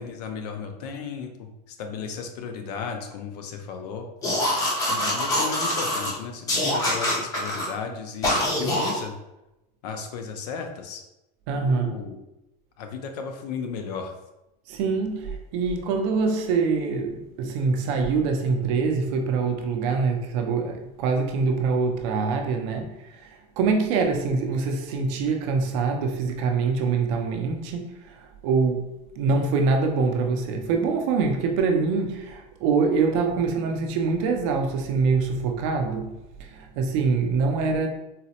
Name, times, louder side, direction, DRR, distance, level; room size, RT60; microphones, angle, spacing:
voice 1, 0.0-4.1 4.9-9.1 9.8-11.0 11.6-12.2 12.8-14.2, left 6 dB, 75° left, 0.5 m, -35 dB
sound 1, 4.2-6.1 6.5-7.7 8.2-9.0, left 1 dB, 15° left, 0.5 m, -24 dB
voice 2, 11.5-12.0 14.7-28.9 29.2-37.9, right 4 dB, 45° right, 0.4 m, -24 dB
3.9 x 2.0 x 2.7 m
supercardioid pair, 170°, 21 cm